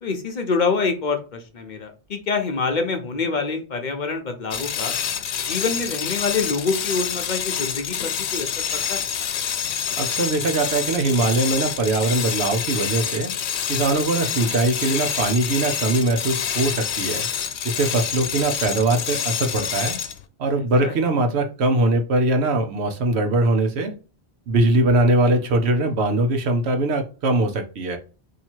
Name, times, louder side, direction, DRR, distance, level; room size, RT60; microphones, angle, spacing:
voice 1, 0.0-4.9 5.4-9.1 20.8-20.9, left 4 dB, 50° left, 5 dB, 0.8 m, -26 dB
sound 1, 4.5-20.2, left 8 dB, 90° left, 0.9 m, -27 dB
voice 2, 9.9-13.3 13.7-17.3 17.6-20.0 20.4-23.9 24.5-28.0, right 2 dB, 80° right, 5 dB, 1.0 m, -21 dB
2.8 x 2.8 x 4.4 m, 0.34 s
omnidirectional pair, 1.1 m